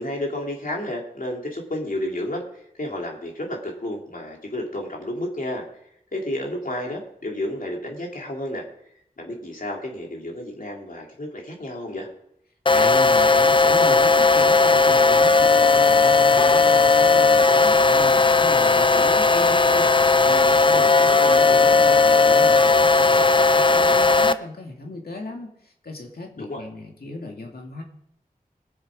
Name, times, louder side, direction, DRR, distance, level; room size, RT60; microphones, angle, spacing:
voice 1, 0.0-5.7 6.1-8.9 9.2-12.1 20.7-21.1 26.4-26.6, left 1 dB, 60° left, 0 dB, 2.8 m, -31 dB
voice 2, 12.7-27.8, left 2 dB, 80° left, 2 dB, 2.2 m, -36 dB
sound 1, 12.7-24.3, left 4 dB, 30° left, 0.5 m, -16 dB
19.5 x 7.3 x 4.9 m, 0.74 s
cardioid pair, 45°, 16 cm